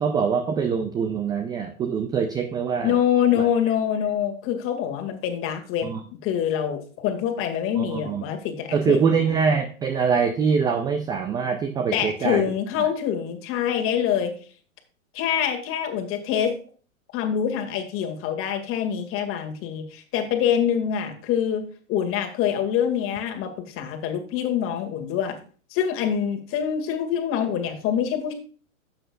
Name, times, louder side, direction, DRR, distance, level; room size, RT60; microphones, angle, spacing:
voice 1, 0.0-3.0 3.4-3.5 5.8-6.0 7.8-8.2 8.7-12.4 12.8-12.9, right 6 dB, 10° right, 7 dB, 0.4 m, -24 dB
voice 2, 2.8-5.9 6.2-9.2 11.9-14.3 15.1-16.5 17.1-21.6 21.9-25.4 25.7-28.3, left 9 dB, 30° left, 5 dB, 2.1 m, -25 dB
12.0 x 8.0 x 2.4 m, 0.40 s
hypercardioid pair, 110°, 41 cm